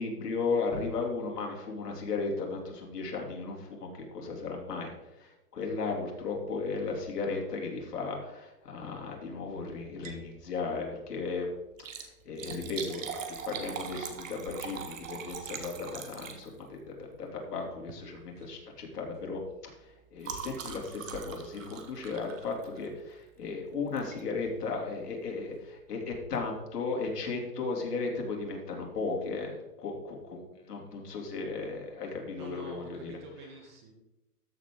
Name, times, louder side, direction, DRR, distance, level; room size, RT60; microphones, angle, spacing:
voice 1, 0.0-11.5 11.9-33.1, left 4 dB, 80° left, 0 dB, 3.0 m, -35 dB
Liquid, 9.9-10.3 10.6-10.7 11.7-16.8 17.8-18.1 18.4-18.6 18.9-23.0 24.0-24.2 24.8-24.9 25.0-25.1, right 6 dB, 55° right, 1.5 m, -42 dB
voice 2, 32.4-33.9, right 2 dB, 20° right, 2 dB, 1.0 m, -48 dB
13.5 x 6.5 x 3.8 m, 0.96 s
hypercardioid pair, 170°, 46 cm